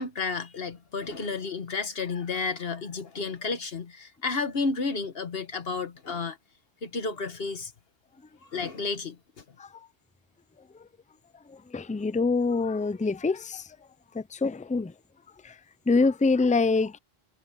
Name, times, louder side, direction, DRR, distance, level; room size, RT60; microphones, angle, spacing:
voice 1, 0.0-6.4 6.8-7.7 8.5-9.4, left 4 dB, 70° left, 1.5 m, -32 dB
voice 2, 11.5-13.7 14.1-14.9 15.4-15.6 15.9-17.0, left 3 dB, 15° left, 0.3 m, -25 dB
omnidirectional pair, 1.0 m